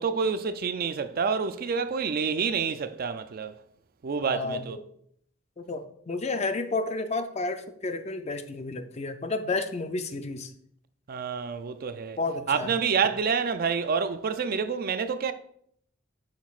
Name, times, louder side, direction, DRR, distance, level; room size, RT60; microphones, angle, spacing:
voice 1, 0.0-3.5 4.0-4.8 11.1-12.2 12.5-15.3, right 6 dB, 45° right, 0.4 m, -28 dB
voice 2, 4.3-4.8 5.6-10.5 12.2-12.7, left 3 dB, 30° left, 0.5 m, -31 dB
8.2 x 6.0 x 2.4 m
head